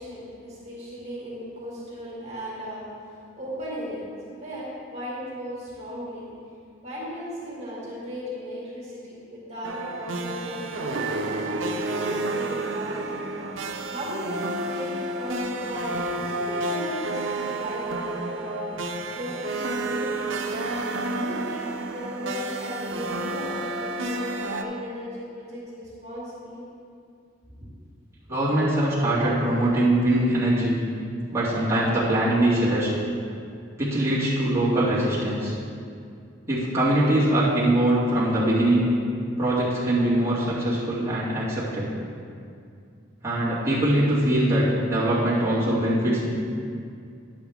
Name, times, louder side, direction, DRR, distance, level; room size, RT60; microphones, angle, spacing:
voice 1, 0.0-6.3 6.8-11.3 11.9-13.2 13.9-18.7 19.1-20.3 21.0-26.7, equal, 35° right, -7 dB, 2.2 m, -36 dB
sound 1, 9.6-24.6, right 2 dB, 90° right, 0.6 m, -30 dB
voice 2, 28.3-30.8 31.3-32.9 33.8-35.5 36.5-38.9 39.4-41.9 43.2-46.3, right 1 dB, 15° right, -11 dB, 2.3 m, -22 dB
11.0 x 7.6 x 3.6 m, 2.3 s
head